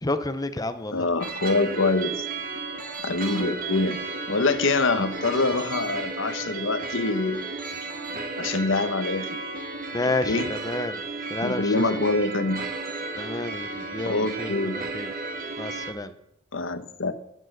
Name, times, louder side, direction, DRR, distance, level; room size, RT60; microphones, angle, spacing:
voice 1, 0.0-1.1 9.9-11.0 11.3-11.7 13.2-15.1 15.6-16.1, left 2 dB, 20° left, 11 dB, 0.7 m, -30 dB
voice 2, 0.9-2.2 3.0-4.0 4.3-7.4 8.4-9.4 10.0-10.5 11.4-12.7 14.1-14.8 16.5-17.1, left 3 dB, 65° left, 11 dB, 1.1 m, -25 dB
sound 1, 1.2-15.9, right 3 dB, 45° right, 1.6 m, -34 dB
12.0 x 10.5 x 6.6 m, 0.79 s
head